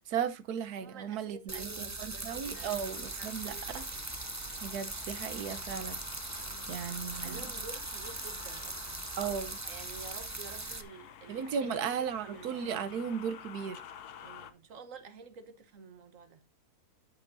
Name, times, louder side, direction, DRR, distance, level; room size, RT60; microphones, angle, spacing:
voice 1, 0.1-3.8 4.6-6.0 6.7-7.5 9.2-9.6 11.3-13.8, right 7 dB, 85° right, 1.4 m, -36 dB
voice 2, 0.8-2.8 3.2-4.1 6.4-6.8 7.1-9.1 9.6-11.7 12.2-12.9 14.2-16.4, right 5 dB, 60° right, 1.5 m, -50 dB
sound 1, 1.5-10.8, right 3 dB, 25° right, 0.4 m, -40 dB
sound 2, 2.4-14.5, left 9 dB, 90° left, 1.3 m, -50 dB
13.5 x 6.4 x 2.6 m
omnidirectional pair, 1.6 m